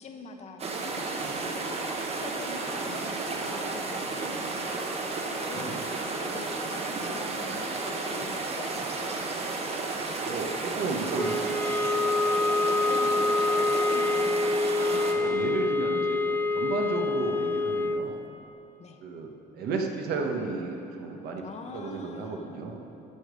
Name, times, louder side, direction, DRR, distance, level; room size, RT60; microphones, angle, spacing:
voice 1, 0.0-9.3 12.6-14.5 18.8-19.0 21.4-22.7, left 4 dB, 40° left, 5 dB, 0.7 m, -45 dB
sound 1, 0.6-15.1, right 3 dB, 40° right, 1.0 m, -32 dB
voice 2, 5.5-5.9 10.2-11.7 15.1-18.2 19.0-21.4 21.7-22.8, right 4 dB, 70° right, 2 dB, 1.1 m, -33 dB
sound 2, 11.1-18.1, left 2 dB, 10° left, 0.3 m, -26 dB
13.0 x 5.1 x 5.1 m, 2.9 s
cardioid pair, 110°, 17 cm